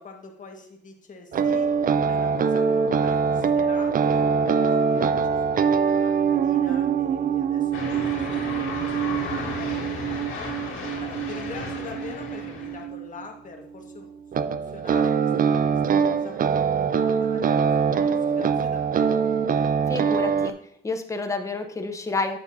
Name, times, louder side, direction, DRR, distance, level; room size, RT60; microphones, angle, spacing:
voice 1, 0.0-1.7 2.1-7.9 8.3-10.2 11.0-14.1 14.4-16.4 16.8-19.2, left 4 dB, 40° left, 2 dB, 1.6 m, -43 dB
sound 1, 1.3-13.2 14.3-20.5, right 6 dB, 45° right, 0.5 m, -23 dB
sound 2, 7.7-12.8, left 3 dB, 85° left, 2.1 m, -34 dB
voice 2, 19.9-20.5 20.8-22.4, left 3 dB, 15° left, 6 dB, 0.8 m, -29 dB
8.1 x 8.0 x 2.7 m, 0.70 s
cardioid pair, 90°, 20 cm